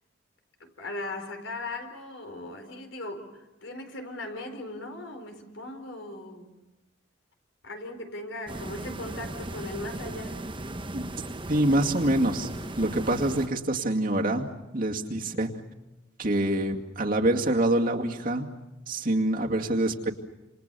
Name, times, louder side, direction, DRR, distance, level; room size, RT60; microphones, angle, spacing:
voice 1, 0.6-6.6 7.6-10.4 15.2-15.3, left 2 dB, 70° left, 6 dB, 4.5 m, -38 dB
sound 1, 8.5-13.5, right 1 dB, 25° right, 1.0 m, -37 dB
voice 2, 11.5-14.5 14.7-15.5 16.2-18.5 18.9-20.1, right 1 dB, 45° right, 1 dB, 2.3 m, -26 dB
28.0 x 27.5 x 6.9 m, 0.99 s
head